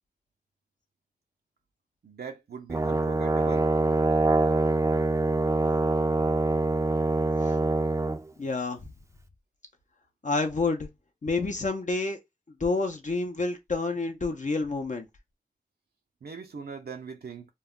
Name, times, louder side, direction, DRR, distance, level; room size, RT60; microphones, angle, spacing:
voice 1, 2.0-3.7 16.2-17.5, right 5 dB, 75° right, 0.5 m, -40 dB
Brass instrument, 2.7-8.2, right 3 dB, 20° right, 0.4 m, -24 dB
voice 2, 8.4-8.8 10.2-10.9 11.2-12.2 12.6-15.1, left 3 dB, 50° left, 0.5 m, -28 dB
2.2 x 2.0 x 3.5 m
cardioid pair, 40°, 16 cm